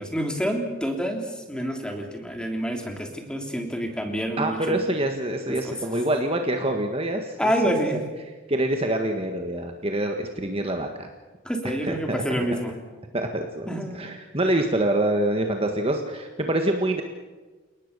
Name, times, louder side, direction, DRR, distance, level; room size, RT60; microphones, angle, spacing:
voice 1, 0.0-4.8 5.6-5.8 7.4-8.0 11.4-12.8 13.7-14.1, equal, 5° left, 3 dB, 3.3 m, -28 dB
voice 2, 4.4-7.8 8.5-11.1 11.9-12.2 13.1-17.0, right 1 dB, 25° right, 4 dB, 1.6 m, -26 dB
29.5 x 19.0 x 6.8 m, 1.3 s
head